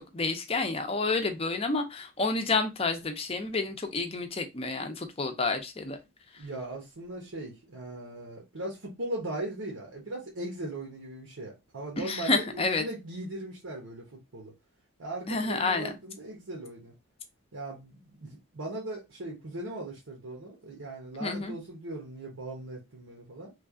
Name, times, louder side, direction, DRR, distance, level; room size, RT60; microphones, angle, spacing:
voice 1, 0.0-6.0 12.0-12.8 15.3-15.9 21.2-21.6, left 3 dB, 30° left, 0.5 m, -29 dB
voice 2, 6.4-14.5 15.0-16.9 17.5-23.5, right 1 dB, 90° right, 1.0 m, -39 dB
3.2 x 2.4 x 3.6 m
head